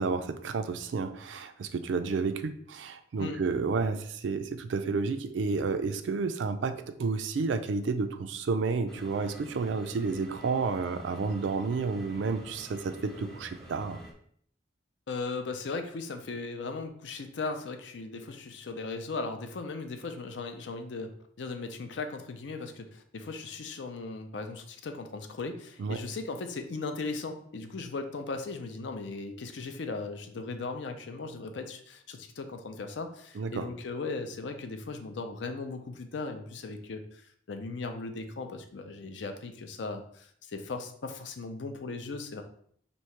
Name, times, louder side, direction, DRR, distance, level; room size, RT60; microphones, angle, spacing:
voice 1, 0.0-14.0 25.8-26.0 33.3-33.6, right 4 dB, 75° right, 10 dB, 0.4 m, -31 dB
sound 1, 8.9-14.1, right 1 dB, ahead, 0.6 m, -49 dB
voice 2, 15.1-42.4, left 3 dB, 70° left, 6 dB, 0.5 m, -37 dB
3.0 x 2.7 x 4.4 m, 0.63 s
head